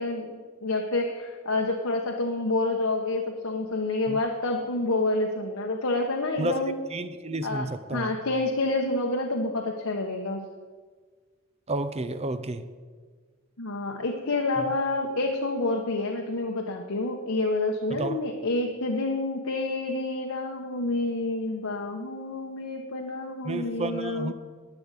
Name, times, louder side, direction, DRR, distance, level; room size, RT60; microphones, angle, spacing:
voice 1, 0.0-6.7 7.4-10.5 13.6-24.3, left 2 dB, 80° left, 2 dB, 1.1 m, -28 dB
voice 2, 6.9-8.1 11.7-12.6 14.6-14.7 17.9-18.2 23.4-24.3, right 2 dB, 30° right, 11 dB, 0.6 m, -31 dB
11.5 x 8.7 x 8.1 m, 1.5 s
head